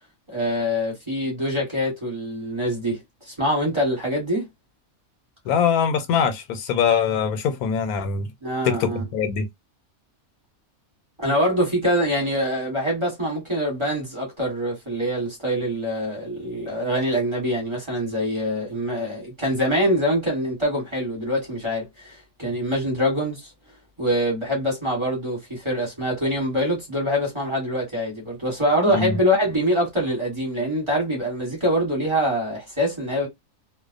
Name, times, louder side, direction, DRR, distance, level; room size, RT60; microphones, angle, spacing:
voice 1, 0.3-3.0 3.4-4.5 8.4-9.0 11.2-23.4 24.0-33.3, equal, 20° right, 1.1 m, -24 dB
voice 2, 5.5-8.3 8.6-9.5 28.9-29.2, left 6 dB, 85° left, 1.1 m, -22 dB
2.4 x 2.1 x 2.4 m
omnidirectional pair, 1.5 m